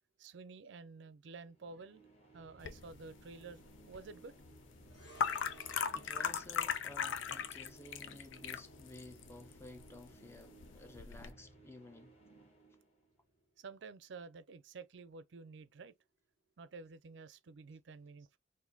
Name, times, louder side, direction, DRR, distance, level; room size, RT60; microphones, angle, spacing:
voice 1, 0.2-4.4 13.6-15.9 16.6-18.4, right 4 dB, 70° right, 0.4 m, -51 dB
sound 1, 1.5-13.4, right 2 dB, 35° left, 1.2 m, -61 dB
sound 2, 2.6-11.3, left 7 dB, 80° left, 0.5 m, -40 dB
sound 3, 4.9-13.4 13.6-13.8, right 1 dB, 65° left, 1.6 m, -62 dB
voice 2, 5.3-12.2, left 1 dB, 15° left, 0.4 m, -54 dB
4.0 x 2.6 x 2.6 m
head